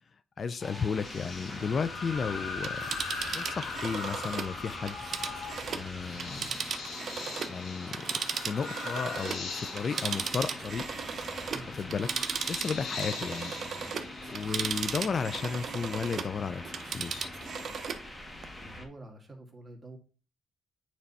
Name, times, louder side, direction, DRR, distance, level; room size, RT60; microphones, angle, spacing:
voice 1, 0.4-2.8 3.4-5.0 5.7-6.5 7.5-10.9 11.7-12.1 12.5-13.5 14.3-17.3, left 5 dB, 45° left, 12 dB, 0.4 m, -33 dB
sound 1, 0.6-18.8, left 1 dB, 20° left, 1.8 m, -44 dB
sound 2, 1.0-14.9, left 5 dB, 80° left, 2.2 m, -41 dB
Telephone, 2.5-7.6 7.9-16.4 16.7-18.1 18.4-18.5, right 6 dB, 55° right, 0.7 m, -36 dB
voice 2, 18.6-20.0, right 2 dB, 20° right, 0 dB, 2.1 m, -47 dB
8.9 x 3.3 x 4.1 m, 0.37 s
cardioid pair, 90°, 0 cm